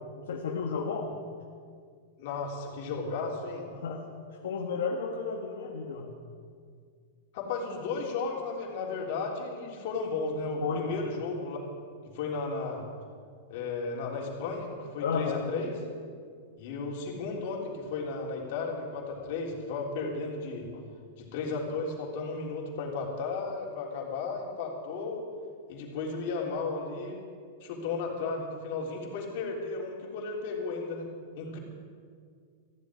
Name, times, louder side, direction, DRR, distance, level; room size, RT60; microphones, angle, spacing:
voice 1, 0.1-1.2 3.7-4.0 4.4-6.1 10.6-11.0 15.0-15.4, left 5 dB, 80° left, 0 dB, 1.5 m, -32 dB
voice 2, 2.2-3.7 7.3-11.6 12.1-12.8 13.5-15.7 16.6-20.7 21.2-25.2 25.7-27.2 27.6-31.1 31.4-31.6, left 4 dB, 50° left, -2 dB, 3.5 m, -34 dB
15.0 x 7.4 x 9.7 m, 2.1 s
supercardioid pair, 155°, 0 cm